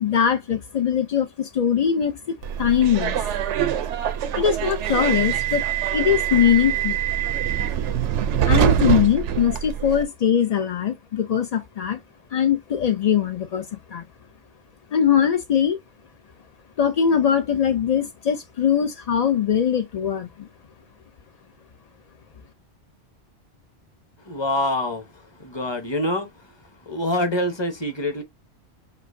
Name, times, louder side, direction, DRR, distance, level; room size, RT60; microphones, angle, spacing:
voice 1, 0.0-3.2 4.3-5.6 5.9-7.0 8.4-12.0 12.3-14.1 14.9-15.8 16.8-20.5, left 8 dB, 60° left, 0.4 m, -21 dB
Subway metro underground, 2.4-10.0, right 10 dB, 80° right, 0.9 m, -24 dB
voice 2, 24.2-25.0 25.4-26.3 26.9-28.2, left 1 dB, 25° left, 0.9 m, -25 dB
6.6 x 2.7 x 2.6 m
omnidirectional pair, 1.2 m